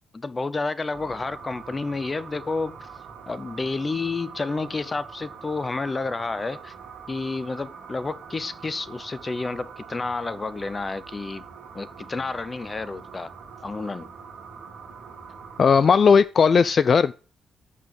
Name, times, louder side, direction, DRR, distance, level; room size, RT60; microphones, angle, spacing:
voice 1, 0.1-2.9 3.3-6.7 7.1-11.4 11.7-13.3 13.6-14.1, left 3 dB, 30° left, 0.7 m, -30 dB
sound 1, 0.9-16.2, right 5 dB, 70° right, 1.6 m, -43 dB
voice 2, 15.6-17.1, left 6 dB, 50° left, 0.3 m, -17 dB
6.2 x 5.3 x 6.7 m
cardioid pair, 70°, 0 cm